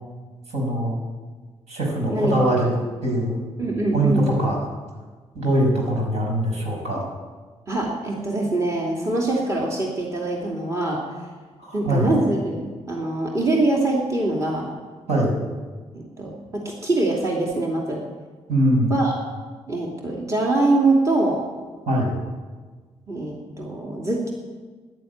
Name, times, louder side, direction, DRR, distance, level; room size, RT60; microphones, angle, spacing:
voice 1, 0.5-1.0 1.7-2.7 3.0-3.4 3.9-4.6 5.3-7.1 11.6-12.1 15.1-15.3 18.5-18.9 21.9-22.1, right 1 dB, 75° right, 0 dB, 5.6 m, -22 dB
voice 2, 2.1-2.6 3.6-4.2 7.7-11.0 11.7-14.7 15.9-18.1 18.9-19.2 19.7-21.4 23.1-24.3, right 2 dB, 25° right, -1 dB, 2.6 m, -23 dB
14.0 x 10.5 x 9.4 m, 1.4 s
cardioid pair, 120°, 11 cm